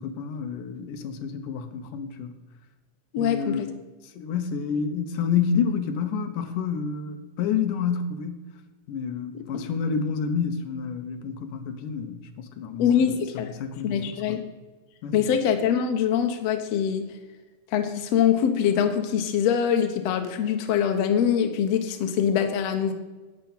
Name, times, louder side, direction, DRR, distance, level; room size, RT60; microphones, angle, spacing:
voice 1, 0.0-2.3 3.2-3.7 4.1-8.4 8.9-13.1 13.3-14.0 14.3-14.4 15.0-15.2, left 6 dB, 80° left, 7 dB, 2.5 m, -29 dB
voice 2, 3.1-3.7 9.3-9.4 12.8-13.5 13.8-14.4 15.1-17.1 17.7-22.9, left 8 dB, 65° left, 5 dB, 1.9 m, -23 dB
11.5 x 9.0 x 5.7 m, 1.2 s
omnidirectional pair, 3.7 m